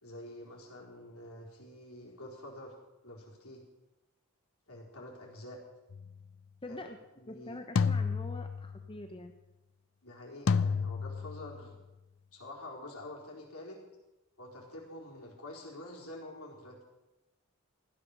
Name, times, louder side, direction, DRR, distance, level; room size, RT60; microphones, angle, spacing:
voice 1, 0.0-2.7 3.0-3.6 4.7-5.6 6.7-6.8 7.2-7.6 10.0-11.8 12.3-13.8 14.4-16.8, left 1 dB, 85° left, -2 dB, 4.3 m, -47 dB
sound 1, 5.9-6.2 7.8-8.9 10.5-11.7, left 5 dB, 60° left, 0.5 m, -31 dB
voice 2, 6.6-7.0 7.3-9.3, left 1 dB, 25° left, 6 dB, 0.8 m, -44 dB
15.5 x 12.0 x 6.7 m, 1.0 s
head